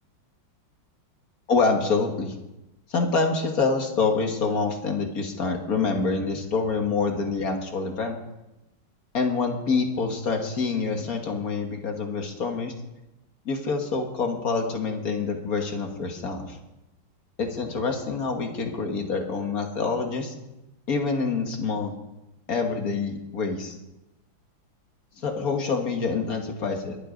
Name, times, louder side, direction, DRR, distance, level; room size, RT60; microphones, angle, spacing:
voice 1, 1.5-2.3 2.9-8.2 9.1-12.7 13.5-16.6 17.4-20.3 20.9-21.9 22.5-23.8 25.2-27.0, left 4 dB, 45° left, 3 dB, 1.9 m, -26 dB
22.0 x 8.0 x 5.1 m, 0.94 s
omnidirectional pair, 2.3 m